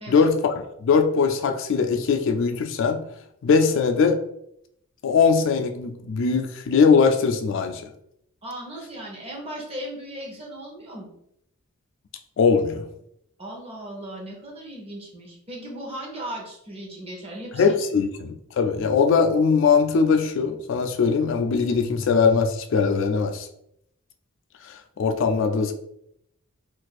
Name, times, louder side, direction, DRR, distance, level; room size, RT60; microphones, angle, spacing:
voice 1, 0.1-3.0 3.4-4.2 5.0-7.8 12.4-12.8 17.5-23.5 24.6-25.7, left 5 dB, 60° left, 6 dB, 0.3 m, -21 dB
voice 2, 8.4-11.1 13.4-18.0, right 1 dB, 30° right, -1 dB, 0.9 m, -37 dB
2.6 x 2.3 x 4.0 m, 0.76 s
head